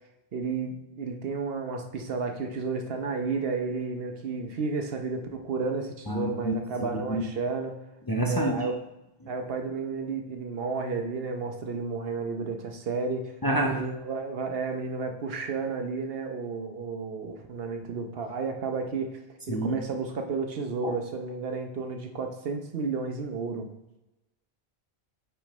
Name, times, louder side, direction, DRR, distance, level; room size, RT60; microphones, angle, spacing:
voice 1, 0.3-7.7 8.2-8.8 9.3-13.3 13.6-19.2 19.5-23.7, right 4 dB, 70° right, 4 dB, 1.0 m, -32 dB
voice 2, 6.1-7.2 8.1-8.7 9.2-9.3 13.4-13.9 19.5-19.8 20.8-21.0, right 1 dB, 25° left, 0 dB, 0.6 m, -28 dB
8.6 x 4.5 x 3.1 m, 0.95 s
omnidirectional pair, 1.0 m